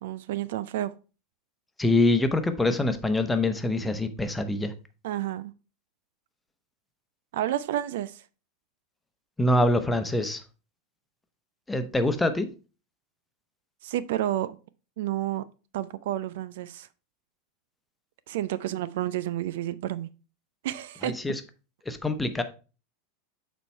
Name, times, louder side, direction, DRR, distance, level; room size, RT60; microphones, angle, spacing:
voice 1, 0.0-0.9 5.0-5.5 7.3-8.2 13.8-14.6 15.0-15.4 15.7-16.9 18.3-20.1 20.6-21.2, right 13 dB, 65° right, 16 dB, 0.4 m, -30 dB
voice 2, 1.8-4.7 9.4-10.4 11.7-12.5 21.0-21.4 21.9-22.4, left 2 dB, 10° left, 9 dB, 0.9 m, -24 dB
6.8 x 4.4 x 4.3 m, 0.34 s
hypercardioid pair, 90°, 0 cm